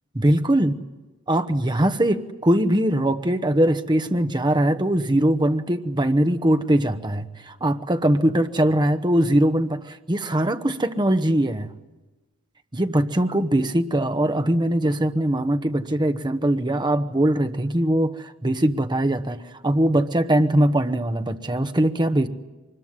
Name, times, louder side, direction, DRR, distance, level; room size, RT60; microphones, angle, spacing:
voice 1, 0.1-0.8 1.3-11.7 12.7-22.3, right 1 dB, 20° right, 7 dB, 1.1 m, -21 dB
24.5 x 21.0 x 9.8 m, 1.2 s
head